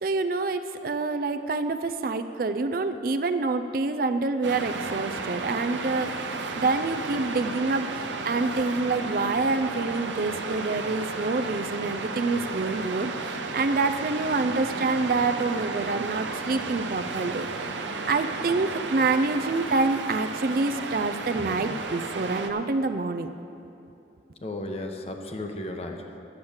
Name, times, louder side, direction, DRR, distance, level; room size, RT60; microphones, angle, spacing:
voice 1, 0.0-6.2 6.5-17.8 18.1-23.3, right 3 dB, 50° right, 9 dB, 0.4 m, -27 dB
Waves surf, 4.4-22.5, right 3 dB, 90° right, 0.8 m, -33 dB
voice 2, 24.4-26.2, left 1 dB, 35° left, 4 dB, 0.9 m, -34 dB
10.0 x 7.9 x 7.2 m, 2.9 s
head